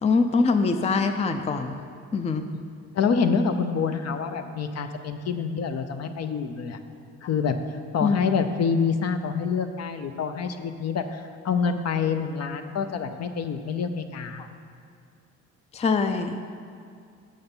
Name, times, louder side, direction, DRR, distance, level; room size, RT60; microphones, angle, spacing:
voice 1, 0.0-1.7 2.1-2.5 8.0-8.2 14.4-14.5 15.7-16.5, left 4 dB, 20° left, 8 dB, 0.4 m, -23 dB
voice 2, 2.9-6.8 7.2-7.6 7.9-14.4, left 6 dB, 55° left, 8 dB, 0.6 m, -26 dB
6.9 x 6.4 x 5.5 m, 2.3 s
cardioid pair, 90°, 30 cm